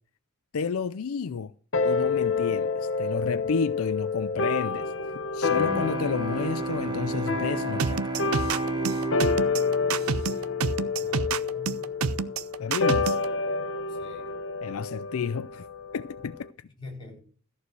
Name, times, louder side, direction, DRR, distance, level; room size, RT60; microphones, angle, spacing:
voice 1, 0.5-1.5 1.8-4.9 5.3-8.0 8.3-8.6 12.6-13.2 14.6-15.6 15.9-16.7, left 5 dB, 75° left, 0.5 m, -31 dB
sound 1, 1.7-16.5, left 4 dB, 60° left, 1.0 m, -29 dB
Bowed string instrument, 5.5-11.1, right 3 dB, 20° right, 0.7 m, -33 dB
sound 2, 7.8-13.3, right 5 dB, 80° right, 0.6 m, -28 dB
voice 2, 11.0-11.9 13.9-14.3 16.8-17.2, left 2 dB, 20° left, 4.3 m, -44 dB
14.0 x 4.8 x 7.9 m
head